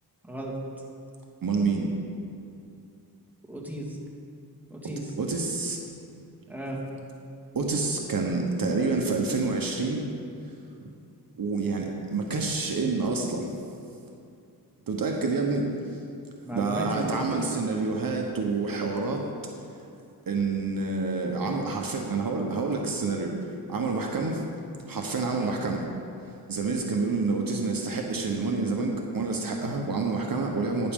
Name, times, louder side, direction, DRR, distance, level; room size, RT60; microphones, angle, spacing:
voice 1, 0.2-0.5 3.5-4.0 4.7-5.1 6.5-6.8 16.4-17.4 25.3-25.6, right 1 dB, 5° right, -3 dB, 2.0 m, -35 dB
voice 2, 1.4-1.9 5.2-5.8 7.5-10.0 10.8-10.9 11.3-13.5 14.9-15.7 16.5-19.3 20.3-23.4 23.7-24.4 24.9-25.8 26.5-30.9, right 3 dB, 60° right, 1 dB, 1.1 m, -28 dB
12.0 x 9.8 x 3.7 m, 2.6 s
wide cardioid pair, 90°, 40 cm